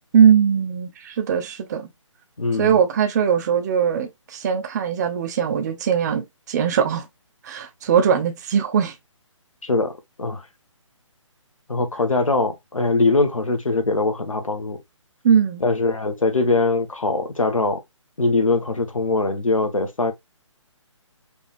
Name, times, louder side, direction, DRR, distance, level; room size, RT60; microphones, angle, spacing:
voice 1, 0.1-1.9 2.6-7.0 7.4-8.9 15.2-15.6, right 7 dB, 35° right, 0.8 m, -20 dB
voice 2, 2.4-2.8 9.6-9.9 10.2-10.4 11.7-14.8 15.6-17.8 18.2-20.1, left 3 dB, 85° left, 1.5 m, -22 dB
5.2 x 3.7 x 2.5 m
figure-of-eight pair, 150°, 17 cm